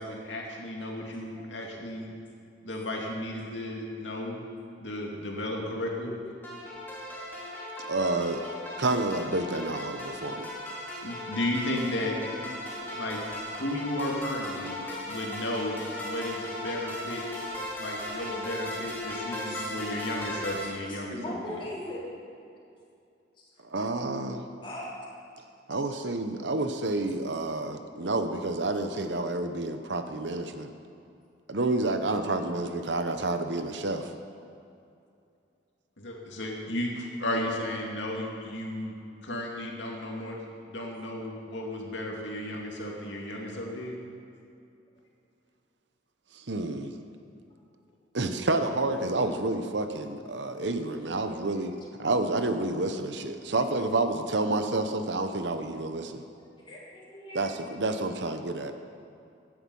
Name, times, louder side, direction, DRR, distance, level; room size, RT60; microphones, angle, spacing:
voice 1, 0.0-2.1 2.6-4.4 4.8-6.1 11.0-12.2 12.4-12.6 13.0-13.2 13.6-17.2 17.8-21.6 36.0-39.0 39.2-44.0, left 1 dB, 80° left, 0 dB, 2.3 m, -34 dB
sound 1, 6.4-20.7, left 1 dB, 10° left, 2.9 m, -37 dB
voice 2, 7.8-8.4 8.8-10.5 23.6-24.4 25.7-30.7 31.5-34.1 46.3-47.0 48.1-51.7 52.0-56.2 57.3-58.7, right 2 dB, 70° right, 7 dB, 1.0 m, -29 dB
voice 3, 20.6-22.0 23.4-23.5 23.8-23.9 24.6-24.9 51.5-51.6 56.6-57.4, left 1 dB, 25° left, -6 dB, 3.8 m, -40 dB
16.0 x 11.0 x 5.5 m, 2.6 s
head